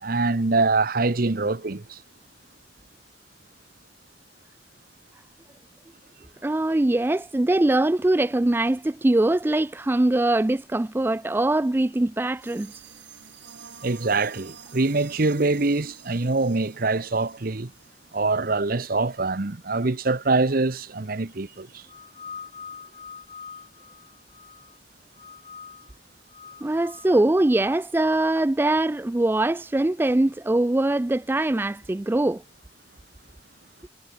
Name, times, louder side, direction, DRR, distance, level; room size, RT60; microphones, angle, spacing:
voice 1, 0.0-2.0 13.8-17.7 18.1-21.8, right 3 dB, 50° right, 0.9 m, -24 dB
voice 2, 6.4-12.7 26.6-32.4, right 1 dB, 10° right, 0.3 m, -22 dB
sound 1, 12.4-18.7, right 7 dB, 70° right, 3.1 m, -48 dB
sound 2, 21.9-24.8 25.2-25.9 26.3-27.8, left 6 dB, 35° left, 4.9 m, -44 dB
head